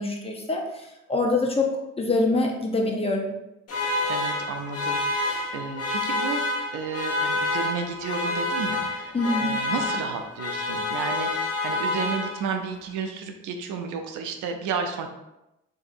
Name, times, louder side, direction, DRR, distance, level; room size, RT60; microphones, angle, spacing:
voice 1, 0.0-3.3 9.1-9.6, left 2 dB, 20° left, 0 dB, 0.6 m, -25 dB
sound 1, 3.7-12.7, left 2 dB, 55° left, 1.0 m, -28 dB
voice 2, 4.1-15.1, right 5 dB, 90° right, 5 dB, 0.5 m, -32 dB
3.9 x 2.7 x 2.5 m, 0.91 s
cardioid pair, 90°, 30 cm